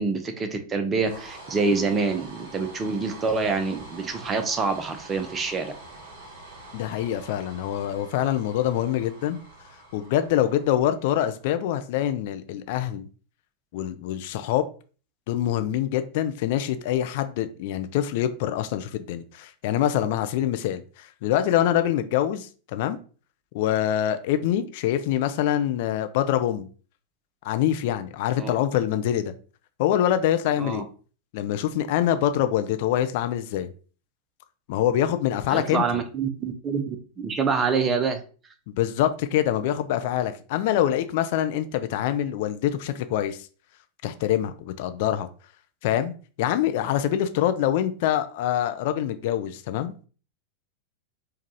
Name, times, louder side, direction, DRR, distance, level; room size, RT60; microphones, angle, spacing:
voice 1, 0.0-5.7 28.4-28.6 30.6-30.8 35.5-38.2, right 4 dB, 20° right, 7 dB, 0.6 m, -26 dB
sound 1, 1.0-11.3, right 2 dB, 50° right, 1.6 m, -45 dB
voice 2, 6.7-9.4 9.9-13.1 13.7-14.6 15.3-23.0 23.5-26.7 27.4-29.3 29.8-30.9 31.3-33.7 34.7-35.8 38.7-43.4 44.0-45.3 45.8-50.1, left 11 dB, 50° left, 10 dB, 0.3 m, -25 dB
4.5 x 2.3 x 2.8 m, 0.38 s
figure-of-eight pair, 90°, 0 cm